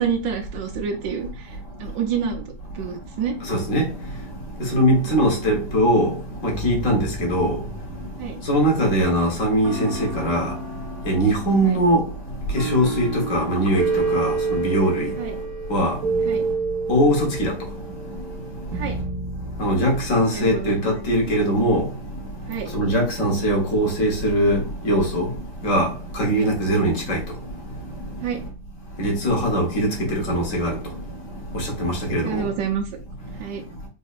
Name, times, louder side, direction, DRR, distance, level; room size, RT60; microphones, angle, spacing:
voice 1, 0.0-2.4 2.7-3.3 5.0-5.1 8.2-8.4 11.6-11.8 15.2-15.3 16.2-16.4 18.7-18.9 20.3-20.9 22.5-22.7 26.3-26.5 28.2-28.4 32.2-32.9 33.4-33.6, right 7 dB, 85° right, 1.5 m, -28 dB
voice 2, 3.5-3.9 4.6-6.1 6.4-7.5 8.5-10.5 11.0-12.0 12.5-15.1 15.7-16.0 16.9-17.5 19.6-21.8 22.7-25.3 25.6-25.9 26.2-27.2 29.0-30.7 31.5-32.4, equal, 50° left, 1.5 m, -21 dB
sound 1, 4.6-5.8 6.5-9.1 9.6-20.1, right 4 dB, 60° right, 1.3 m, -30 dB
4.2 x 2.7 x 2.4 m
omnidirectional pair, 1.9 m